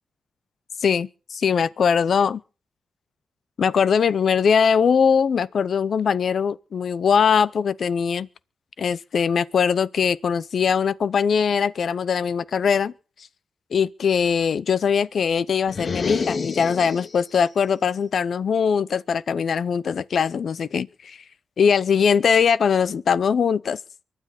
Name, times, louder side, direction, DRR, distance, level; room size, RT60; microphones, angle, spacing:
voice 1, 0.8-2.4 3.6-8.3 8.8-12.9 13.7-21.2 21.6-23.8, left 6 dB, 70° left, 0.7 m, -21 dB
sound 1, 15.7-17.3, left 4 dB, 50° left, 1.0 m, -28 dB
24.0 x 10.0 x 4.2 m
cardioid pair, 55°, 0 cm